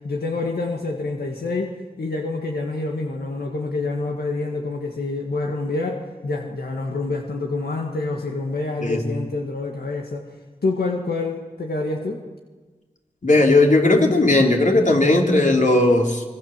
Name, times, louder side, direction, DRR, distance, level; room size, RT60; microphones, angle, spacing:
voice 1, 0.0-10.2 10.6-12.2, left 3 dB, 90° left, 1 dB, 1.9 m, -27 dB
voice 2, 8.8-9.1 13.2-16.2, left 2 dB, 55° left, 1 dB, 3.8 m, -17 dB
25.0 x 23.0 x 7.5 m, 1.3 s
cardioid pair, 45°, 16 cm